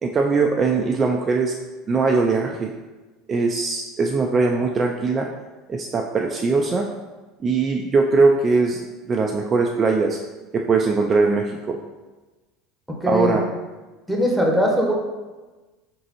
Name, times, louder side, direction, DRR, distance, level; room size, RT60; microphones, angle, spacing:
voice 1, 0.0-1.5 1.9-2.7 3.3-5.3 5.7-6.9 7.4-8.8 9.1-10.2 10.5-11.8 13.1-13.5, right 4 dB, 30° right, 1 dB, 0.4 m, -20 dB
voice 2, 12.9-13.4 14.1-14.9, equal, ahead, -1 dB, 1.1 m, -20 dB
4.5 x 3.9 x 2.9 m, 1.2 s
hypercardioid pair, 75°, 0 cm